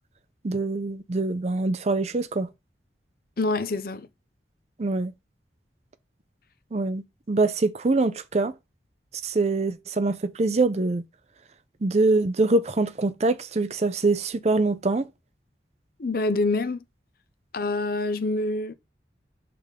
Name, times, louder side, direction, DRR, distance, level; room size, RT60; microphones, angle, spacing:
voice 1, 0.4-2.5 4.8-5.1 6.7-7.0 7.3-8.5 9.2-11.0 11.8-15.1, right 3 dB, 35° right, 0.5 m, -24 dB
voice 2, 3.4-4.1 16.0-16.8 17.5-18.7, left 2 dB, 55° left, 0.6 m, -26 dB
5.5 x 3.4 x 5.0 m
head